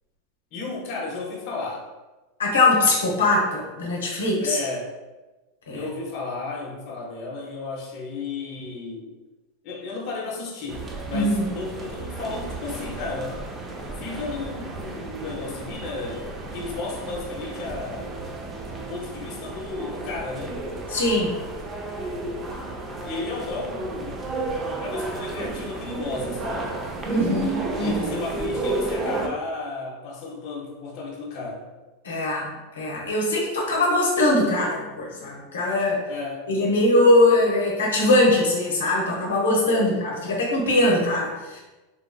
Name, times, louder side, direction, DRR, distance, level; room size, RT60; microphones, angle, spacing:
voice 1, 0.5-1.9 4.4-4.9 5.7-9.1 9.6-13.4 14.0-18.3 18.8-20.6 23.0-24.2 24.8-26.7 27.8-31.7 36.1-36.5 39.7-39.9, left 3 dB, 50° left, -2 dB, 0.6 m, -33 dB
voice 2, 2.4-4.6 5.7-5.8 11.1-11.4 20.9-21.3 27.0-27.9 32.0-36.0 36.5-41.6, left 2 dB, 90° left, -2 dB, 0.6 m, -21 dB
sound 1, 10.7-29.3, right 2 dB, 25° right, 0.4 m, -32 dB
2.8 x 2.3 x 2.2 m, 1.1 s
hypercardioid pair, 105°, 0 cm